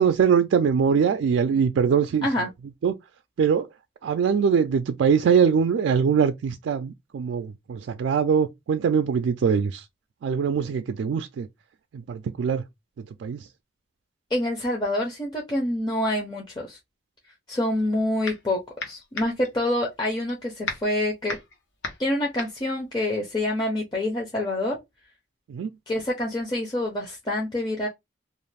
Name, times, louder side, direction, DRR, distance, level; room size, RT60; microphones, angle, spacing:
voice 1, 0.0-2.3 2.8-2.9 3.4-3.7 4.0-9.8 10.2-11.5 12.1-12.6 13.2-13.4 25.5-25.7, right 6 dB, 90° right, 0.3 m, -22 dB
voice 2, 14.3-16.8 17.5-18.6 18.9-21.4 22.0-24.8 25.9-27.9, left 1 dB, 25° left, 0.6 m, -26 dB
sound 1, 17.7-18.5 18.8-23.8, left 3 dB, 85° left, 0.9 m, -36 dB
2.5 x 2.4 x 3.2 m
head